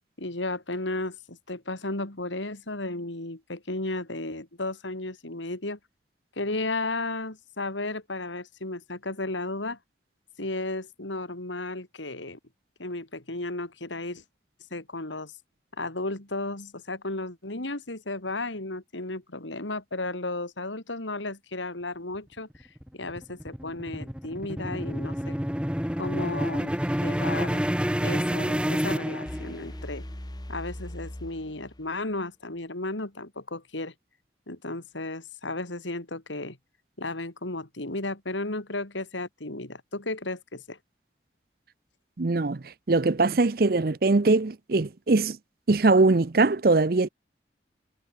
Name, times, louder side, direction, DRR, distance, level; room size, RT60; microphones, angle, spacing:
voice 1, 0.2-5.8 6.4-9.8 10.4-12.4 12.8-14.2 14.7-15.3 15.8-22.7 22.9-25.4 26.0-26.8 27.0-27.6 28.0-30.0 30.5-33.9 34.5-36.6 37.0-40.8, left 2 dB, 90° left, 3.6 m, -34 dB
sound 1, 22.5-29.8, equal, 5° right, 1.3 m, -28 dB
sound 2, 29.3-32.2, left 1 dB, 20° left, 1.1 m, -40 dB
voice 2, 42.2-45.4 45.7-47.1, right 3 dB, 50° right, 0.6 m, -22 dB
head